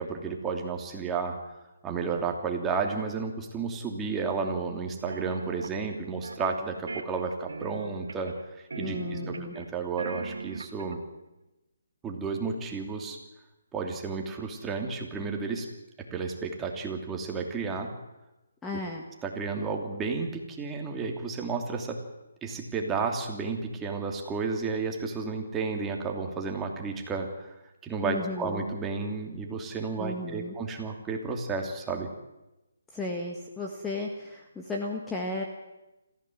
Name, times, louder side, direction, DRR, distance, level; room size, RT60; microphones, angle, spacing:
voice 1, 0.0-1.4 1.8-11.0 12.0-13.2 13.7-15.7 16.1-17.9 19.2-22.0 22.4-27.6 27.8-32.1, right 4 dB, 10° right, 2 dB, 2.8 m, -32 dB
sound 1, 5.1-5.8 6.2-6.6 6.9-8.4 8.7-9.7 10.0-11.0, right 3 dB, 80° right, 2.2 m, -38 dB
voice 2, 8.8-9.6 18.6-19.0 28.0-28.6 30.0-30.6 32.9-35.4, left 2 dB, 10° left, 0 dB, 1.8 m, -35 dB
26.5 x 15.0 x 7.8 m, 1.0 s
hypercardioid pair, 155°, 0 cm